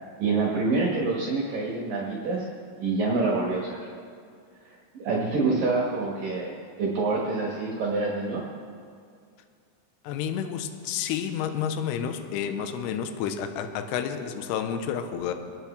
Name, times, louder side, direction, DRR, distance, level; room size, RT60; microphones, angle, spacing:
voice 1, 0.2-2.5 2.8-3.9 4.7-8.4, right 3 dB, 60° right, -4 dB, 2.8 m, -27 dB
voice 2, 10.0-15.3, left 8 dB, 80° left, 6 dB, 2.7 m, -30 dB
27.0 x 10.5 x 3.3 m, 2.3 s
omnidirectional pair, 5.3 m